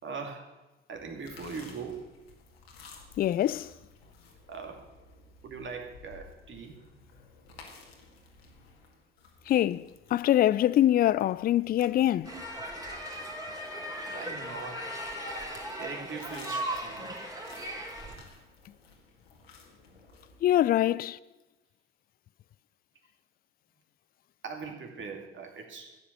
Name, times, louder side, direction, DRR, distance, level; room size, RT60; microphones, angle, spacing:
voice 1, 0.0-0.5 0.9-2.1 4.5-4.8 5.4-6.8 12.3-12.4 14.0-14.9 15.8-17.2 20.8-21.0 24.4-26.0, right 5 dB, 40° right, 2.6 m, -41 dB
sound 1, 0.9-20.5, left 4 dB, 80° left, 2.0 m, -55 dB
voice 2, 3.2-3.7 9.5-12.3 20.4-21.2, left 12 dB, 30° left, 0.4 m, -24 dB
sound 2, 12.2-18.1, right 1 dB, 10° right, 3.4 m, -37 dB
13.5 x 8.4 x 6.8 m
figure-of-eight pair, 55°, 30 cm